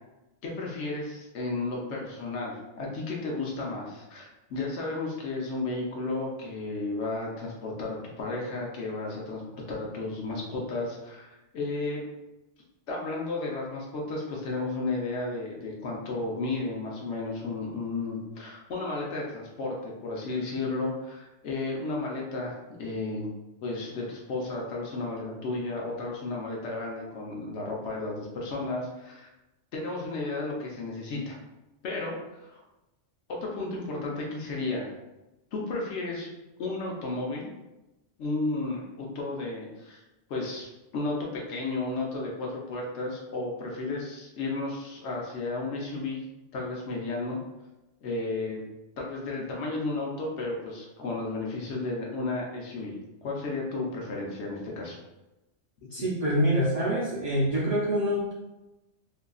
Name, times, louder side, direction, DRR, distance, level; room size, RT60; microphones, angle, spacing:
voice 1, 0.4-12.0 12.9-23.3 23.6-29.3 29.7-31.4 31.8-32.6 33.3-34.9 35.5-36.3 36.6-37.5 38.2-40.0 40.3-46.2 46.5-47.4 48.0-48.7 49.0-55.0, left 3 dB, 75° left, -2 dB, 1.0 m, -33 dB
voice 2, 55.9-58.3, equal, 45° right, -8 dB, 0.5 m, -26 dB
2.7 x 2.4 x 2.3 m, 1.0 s
omnidirectional pair, 1.2 m